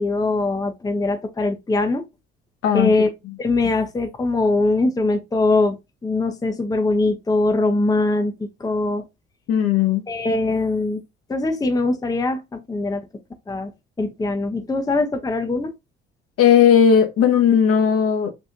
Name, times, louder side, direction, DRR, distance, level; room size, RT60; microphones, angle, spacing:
voice 1, 0.0-2.0 2.7-3.1 3.4-9.0 10.1-11.0 11.3-13.0 13.5-13.7 14.0-15.7, left 2 dB, 15° left, 0.6 m, -22 dB
voice 2, 9.5-10.1 16.4-18.3, left 8 dB, 50° left, 0.8 m, -16 dB
3.6 x 2.5 x 2.5 m
hypercardioid pair, 55°, 29 cm